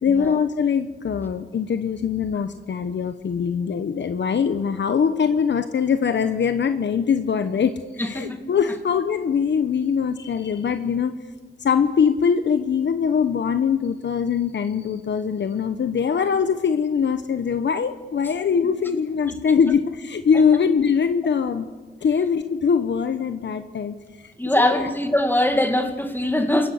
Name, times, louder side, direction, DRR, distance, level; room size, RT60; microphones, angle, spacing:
voice 1, 0.0-11.1 11.6-21.7 22.0-24.3 24.6-24.9, left 6 dB, 70° left, 9 dB, 1.0 m, -22 dB
voice 2, 8.0-8.4 18.6-18.7 19.3-19.4 20.3-20.4 22.1-22.2 24.4-26.7, left 1 dB, 10° left, 6 dB, 2.3 m, -22 dB
28.5 x 16.5 x 6.5 m, 1.4 s
wide cardioid pair, 100°, 19 cm